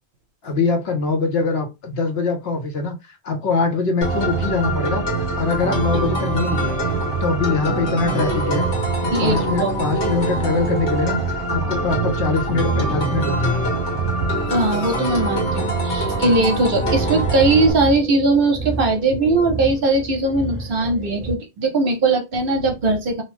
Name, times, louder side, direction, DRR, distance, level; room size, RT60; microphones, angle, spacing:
voice 1, 0.4-5.0 5.4-6.8 7.2-8.7 9.0-11.2 11.5-13.7, left 3 dB, 65° left, 5 dB, 0.9 m, -23 dB
sound 1, 4.0-17.7, right 2 dB, 80° left, 1.5 m, -23 dB
voice 2, 9.1-9.8 14.5-23.2, right 2 dB, 55° right, 3 dB, 0.8 m, -20 dB
sound 2, 15.8-21.3, right 3 dB, 15° right, 0.5 m, -33 dB
2.9 x 2.0 x 3.0 m, 0.24 s
omnidirectional pair, 1.2 m